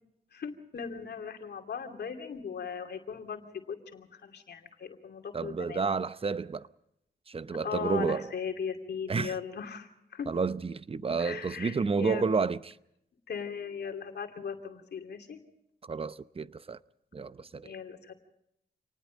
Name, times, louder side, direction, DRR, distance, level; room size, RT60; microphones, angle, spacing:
voice 1, 0.3-3.4 3.7-5.8 7.6-10.3 11.2-12.3 13.3-15.4 17.6-18.1, left 6 dB, 75° left, 2.7 m, -38 dB
voice 2, 5.3-6.7 7.3-8.3 9.1-9.4 10.3-12.8 15.8-16.8 17.1-17.7, right 4 dB, 35° right, 0.8 m, -30 dB
27.5 x 19.5 x 5.2 m
cardioid pair, 75°, 17 cm